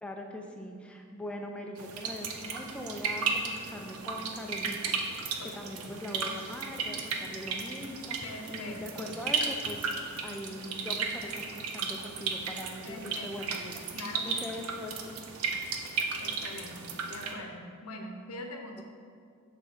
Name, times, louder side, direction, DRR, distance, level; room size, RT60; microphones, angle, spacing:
voice 1, 0.0-4.7 5.5-9.9 10.2-13.9 14.2-15.0, left 1 dB, 5° left, 1 dB, 0.5 m, -41 dB
sound 1, 1.8-17.3, right 5 dB, 80° right, 0.6 m, -35 dB
voice 2, 8.2-9.1 12.8-13.3 13.9-14.3 16.2-18.8, left 2 dB, 85° left, 4 dB, 0.8 m, -43 dB
6.6 x 3.7 x 5.9 m, 2.2 s
head